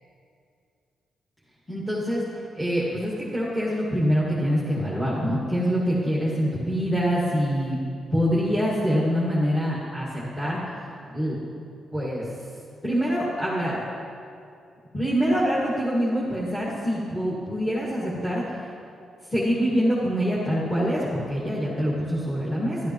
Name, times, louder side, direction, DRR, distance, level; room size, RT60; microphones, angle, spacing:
voice 1, 1.7-7.8 8.1-11.4 11.9-12.3 12.8-13.8 14.9-18.6 19.3-22.9, equal, 10° left, -7 dB, 1.9 m, -25 dB
12.5 x 12.0 x 3.1 m, 2.4 s
cardioid pair, 105°, 0 cm